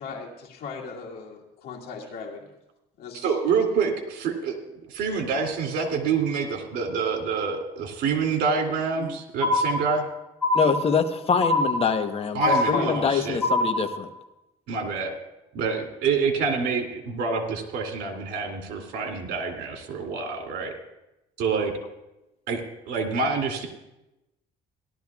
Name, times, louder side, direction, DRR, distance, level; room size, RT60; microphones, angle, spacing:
voice 1, 0.0-2.4 3.0-3.3 9.0-9.1 12.4-13.2, left 4 dB, 65° left, -1 dB, 2.1 m, -34 dB
voice 2, 3.1-4.6 4.8-10.0 12.3-13.4 14.7-15.2 15.5-20.7 21.4-21.7 22.5-23.7, right 5 dB, 75° right, 3 dB, 2.5 m, -27 dB
sound 1, 9.4-10.1 10.4-11.1 11.4-12.1 12.4-13.1 13.4-14.1, left 2 dB, 10° left, 2.7 m, -24 dB
voice 3, 10.5-12.4 12.7-14.1, left 6 dB, 35° left, 6 dB, 1.1 m, -24 dB
18.0 x 12.0 x 2.4 m, 0.92 s
cardioid pair, 110°, 17 cm